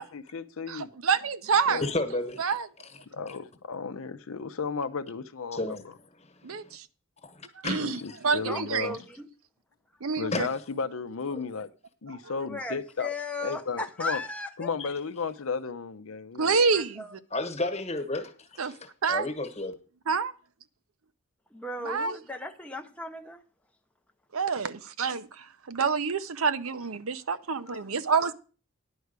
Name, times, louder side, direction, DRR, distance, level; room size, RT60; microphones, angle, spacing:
voice 1, 0.0-0.9 1.7-1.9 3.1-5.6 7.8-8.9 10.2-11.7 12.0-13.1 13.4-14.2 14.6-16.6, left 5 dB, 70° left, 0.6 m, -34 dB
voice 2, 0.7-1.8 2.4-2.7 6.4-6.9 7.6-9.0 10.0-10.5 12.1-12.4 16.4-17.0 18.6-18.7 19.0-19.3 20.1-20.3 21.8-22.2 24.3-28.3, right 5 dB, 75° right, 0.7 m, -28 dB
voice 3, 1.8-2.4 5.5-5.9 6.5-6.8 7.2-7.9 10.3-10.4 11.3-11.4 14.8-14.9 17.3-19.7, left 2 dB, 30° left, 1.3 m, -32 dB
voice 4, 8.4-9.3 12.5-14.7 16.7-17.1 21.5-23.4 27.6-27.9, left 2 dB, 5° left, 0.5 m, -36 dB
10.5 x 4.8 x 8.0 m
head